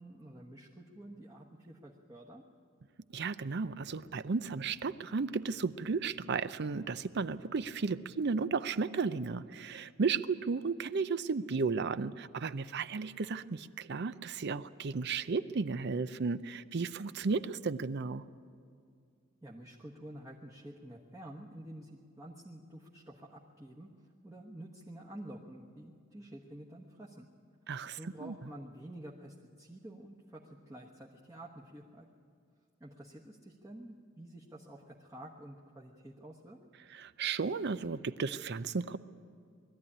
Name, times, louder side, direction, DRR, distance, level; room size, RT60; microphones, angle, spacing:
voice 1, 0.0-2.4 19.4-27.3 27.8-32.1 32.8-36.6, right 1 dB, 15° right, -3 dB, 1.2 m, -49 dB
voice 2, 3.1-18.2 27.7-28.3 36.9-39.0, right 4 dB, 55° right, 14 dB, 0.6 m, -34 dB
20.5 x 13.5 x 9.9 m, 2.2 s
head